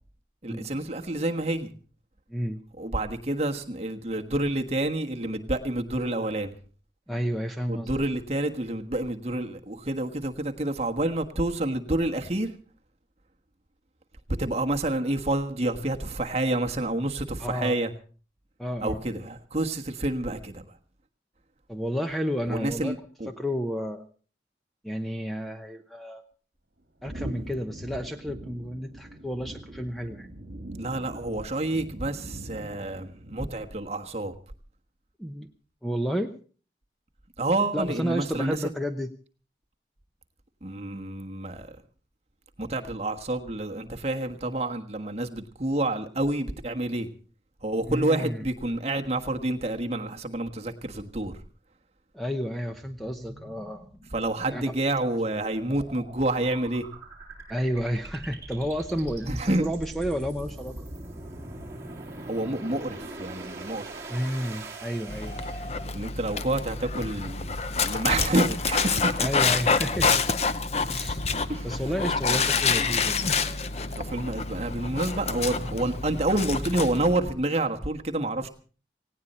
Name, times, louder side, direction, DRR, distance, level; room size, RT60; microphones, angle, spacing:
voice 1, 0.4-1.7 2.8-6.6 7.7-12.5 14.3-17.9 18.8-20.6 22.5-23.3 30.7-34.3 37.4-38.6 40.6-41.8 42.6-47.1 47.6-51.4 54.1-56.9 59.3-59.6 62.2-63.9 65.9-67.5 67.8-69.2 70.9-71.0 71.5-71.8 72.3-72.4 73.9-78.5, right 1 dB, 35° right, 4 dB, 1.4 m, -28 dB
voice 2, 2.3-2.6 7.1-7.9 17.4-17.8 18.6-19.0 21.7-23.0 23.3-24.1 24.8-26.2 27.0-30.3 35.2-35.5 35.8-36.4 37.7-39.1 47.9-48.4 52.1-53.9 54.5-54.7 57.5-60.8 64.1-65.5 69.2-70.2 70.9-71.2 71.6-73.2, equal, ahead, 6 dB, 0.8 m, -31 dB
sound 1, 27.0-33.8, right 1 dB, 60° right, 1.7 m, -42 dB
sound 2, 52.7-66.1, right 2 dB, 15° right, 3.5 m, -42 dB
Dog, 65.1-77.2, left 4 dB, 35° left, 0.7 m, -27 dB
18.0 x 17.0 x 4.2 m, 0.39 s
head